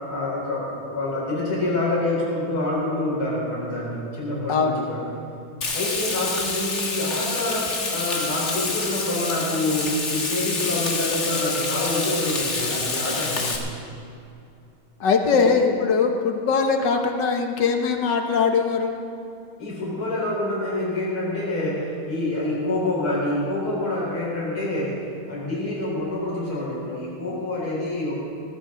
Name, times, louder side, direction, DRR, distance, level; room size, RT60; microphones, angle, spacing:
voice 1, 0.1-5.1 5.7-13.7 15.3-15.5 19.6-25.0 25.3-28.2, left 2 dB, 85° left, -5 dB, 5.4 m, -27 dB
voice 2, 4.5-4.8 15.0-19.0, left 5 dB, 60° left, 4 dB, 1.7 m, -21 dB
Frying (food), 5.6-13.6, left 3 dB, 35° left, 1.6 m, -27 dB
18.5 x 15.5 x 3.9 m, 2.5 s
omnidirectional pair, 2.3 m